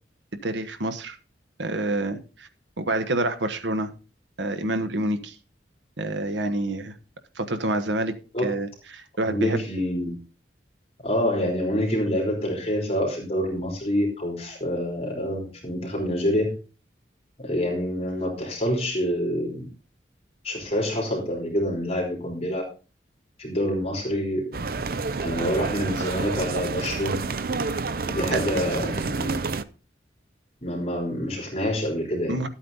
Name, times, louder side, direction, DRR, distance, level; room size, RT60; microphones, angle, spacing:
voice 1, 0.4-1.2 1.6-2.5 2.8-3.9 4.4-5.3 6.0-6.9 7.3-8.1 8.4-9.6 28.3-28.4 32.3-32.5, right 2 dB, 90° right, 9 dB, 1.2 m, -27 dB
voice 2, 9.2-10.1 11.0-16.5 17.4-19.7 20.4-22.6 23.4-24.5 25.2-27.2 28.1-29.4 30.6-32.3, equal, 35° left, -1 dB, 3.6 m, -27 dB
sound 1, 24.5-29.6, right 4 dB, 55° right, 0.6 m, -29 dB
13.0 x 8.6 x 4.0 m, 0.34 s
head